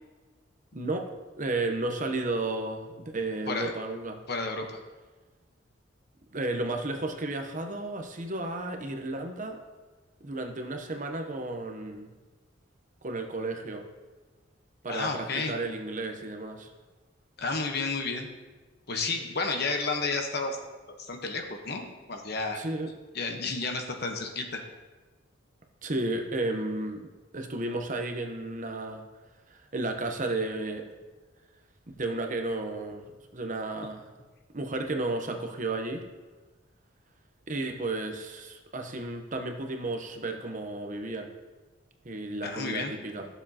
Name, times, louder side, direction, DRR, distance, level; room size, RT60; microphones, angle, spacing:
voice 1, 0.7-1.1 1.4-4.2 6.3-9.6 10.2-12.1 13.0-13.9 14.8-16.7 22.5-22.9 25.8-27.0 27.3-29.0 29.5-30.9 32.0-33.0 33.3-34.1 34.5-36.0 37.5-41.3 42.0-43.3, right 2 dB, 40° right, 4 dB, 0.9 m, -33 dB
voice 2, 4.3-4.7 14.9-15.5 17.4-18.3 18.9-20.6 21.0-22.6 23.1-24.6 42.4-42.9, left 3 dB, 50° left, 3 dB, 1.1 m, -31 dB
14.5 x 7.0 x 2.9 m, 1.3 s
head